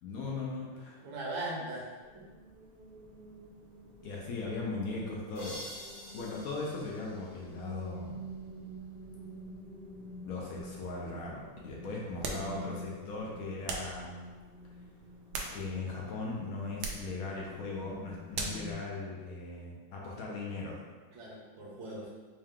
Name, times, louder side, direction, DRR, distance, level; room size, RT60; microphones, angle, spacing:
voice 1, 0.0-1.0 4.0-5.6 6.1-8.2 10.3-14.2 15.5-20.8, left 3 dB, 70° left, -3 dB, 0.9 m, -38 dB
voice 2, 1.0-2.2 21.1-22.1, right 1 dB, 60° right, -4 dB, 1.3 m, -39 dB
sound 1, 2.0-18.7, right 1 dB, 45° right, 0.7 m, -48 dB
sound 2, 5.3-8.1, equal, 90° left, 1.7 m, -48 dB
sound 3, 12.2-12.5 13.7-14.0 15.0-15.9 16.8-17.1 18.3-18.7, right 3 dB, 90° right, 1.3 m, -38 dB
4.6 x 2.3 x 3.5 m, 1.4 s
omnidirectional pair, 2.0 m